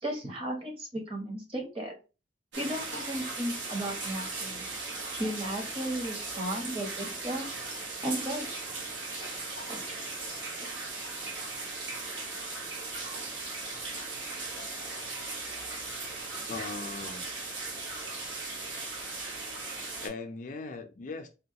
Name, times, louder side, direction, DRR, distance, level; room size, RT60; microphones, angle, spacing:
voice 1, 0.0-2.0 2.5-4.7 5.2-7.5 8.0-8.5 9.7-9.8, right 1 dB, 30° right, 0.9 m, -35 dB
sound 1, 2.5-20.1, right 3 dB, 80° right, 1.0 m, -38 dB
voice 2, 16.5-17.2 20.0-21.3, left 3 dB, 45° left, 0.4 m, -39 dB
3.7 x 2.2 x 2.8 m
head